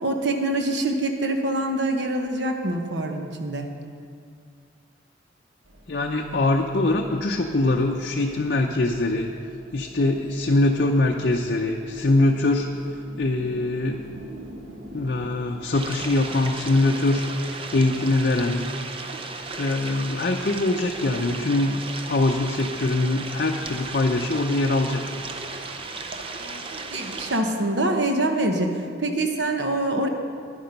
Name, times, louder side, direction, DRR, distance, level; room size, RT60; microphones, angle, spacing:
voice 1, 0.0-3.7 26.4-30.1, right 1 dB, 65° right, 4 dB, 1.1 m, -25 dB
sound 1, 5.6-16.6, right 1 dB, 80° right, 1.6 m, -46 dB
voice 2, 5.9-9.3 9.7-12.7 13.2-14.0 14.9-18.6 19.6-25.0, left 2 dB, 50° left, 1 dB, 0.6 m, -23 dB
sound 2, 15.7-27.4, right 3 dB, 30° right, 0.6 m, -35 dB
10.5 x 10.0 x 5.3 m, 2.2 s
head